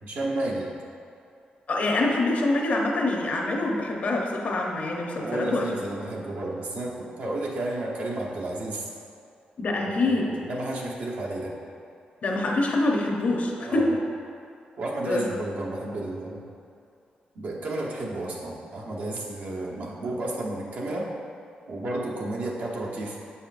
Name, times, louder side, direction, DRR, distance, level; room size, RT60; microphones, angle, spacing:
voice 1, 0.0-0.7 5.2-8.9 9.9-11.5 13.6-13.9 14.8-16.4 17.3-21.1 21.7-23.2, right 2 dB, 65° right, -4 dB, 1.0 m, -32 dB
voice 2, 1.7-5.7 9.6-10.3 12.2-14.0 15.1-15.3, left 2 dB, 55° left, 0 dB, 0.8 m, -25 dB
7.3 x 5.6 x 2.5 m, 2.5 s
wide cardioid pair, 130°, 3 cm